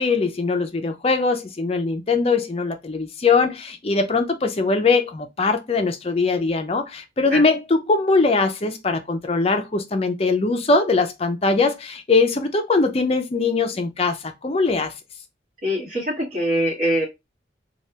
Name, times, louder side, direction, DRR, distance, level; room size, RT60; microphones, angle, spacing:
voice 1, 0.0-14.9, left 3 dB, 35° left, 0.5 m, -21 dB
voice 2, 15.6-17.1, equal, 45° right, 1.5 m, -23 dB
3.3 x 2.3 x 2.8 m
head